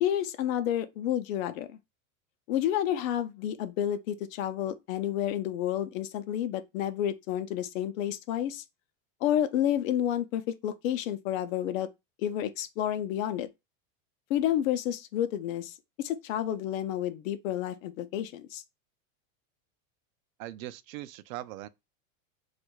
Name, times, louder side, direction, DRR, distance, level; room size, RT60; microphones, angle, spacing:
voice 1, 0.0-1.8 2.5-8.6 9.2-11.9 12.2-13.5 14.3-18.6, left 11 dB, 75° left, 0.6 m, -30 dB
voice 2, 20.4-21.7, right 14 dB, 80° right, 0.5 m, -40 dB
4.4 x 2.5 x 2.3 m
supercardioid pair, 160°, 40 cm